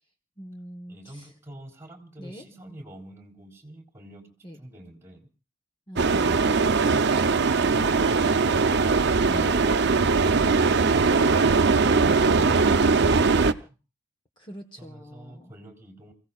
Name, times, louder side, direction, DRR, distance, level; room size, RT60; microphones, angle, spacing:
voice 1, 0.4-1.3 2.2-2.4 4.4-4.6 5.9-6.7 14.4-15.5, equal, 25° left, 4 dB, 1.2 m, -42 dB
voice 2, 0.9-4.3 4.6-5.2 14.8-16.1, right 1 dB, 15° right, 1 dB, 3.6 m, -46 dB
sound 1, 6.0-13.5, right 4 dB, 60° right, 0.7 m, -20 dB
29.5 x 16.5 x 2.4 m, 0.33 s
head